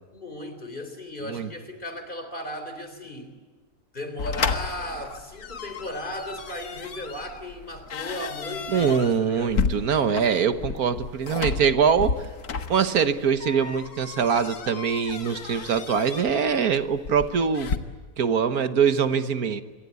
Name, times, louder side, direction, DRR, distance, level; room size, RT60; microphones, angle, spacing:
voice 1, 0.1-3.3 3.9-9.5, left 1 dB, 30° left, 8 dB, 3.8 m, -36 dB
sound 1, 4.2-17.8, left 5 dB, 75° left, 2.0 m, -33 dB
voice 2, 8.7-12.2 12.7-17.7 18.2-19.6, right 6 dB, 75° right, 11 dB, 1.7 m, -23 dB
27.5 x 23.5 x 8.3 m, 1.4 s
omnidirectional pair, 1.6 m